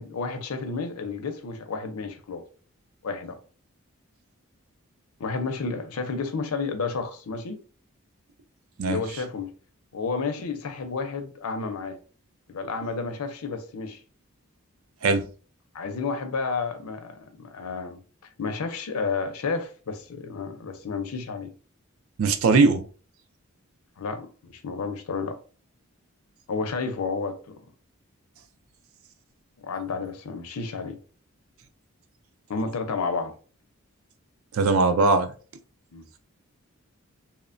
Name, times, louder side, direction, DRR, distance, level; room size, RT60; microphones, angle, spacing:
voice 1, 0.0-2.4 3.0-3.4 5.2-7.6 8.9-9.5 9.9-12.0 12.5-14.0 15.7-18.0 18.4-21.5 24.0-25.4 26.5-27.4 29.6-31.0 32.5-33.3 35.9-36.1, left 4 dB, 80° left, 0.5 m, -31 dB
voice 2, 22.2-22.9 34.5-35.3, right 3 dB, 70° right, 0.4 m, -20 dB
2.9 x 2.1 x 2.5 m
head